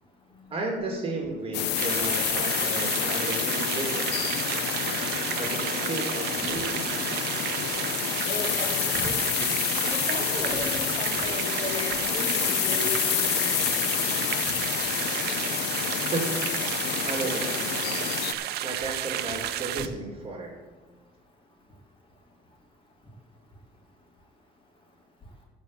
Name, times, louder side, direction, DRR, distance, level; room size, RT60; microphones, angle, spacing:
voice 1, 0.5-4.1 5.3-7.1 16.1-16.6 17.0-17.9 18.6-20.5, right 2 dB, 35° right, 1 dB, 2.6 m, -33 dB
sound 1, 1.5-18.3, left 12 dB, 85° left, 0.8 m, -28 dB
sound 2, 1.8-19.9, right 12 dB, 70° right, 0.7 m, -32 dB
voice 2, 8.3-9.5 9.9-13.7, left 2 dB, 30° left, -2 dB, 3.7 m, -36 dB
13.5 x 5.3 x 7.7 m, 1.3 s
cardioid pair, 110°, 17 cm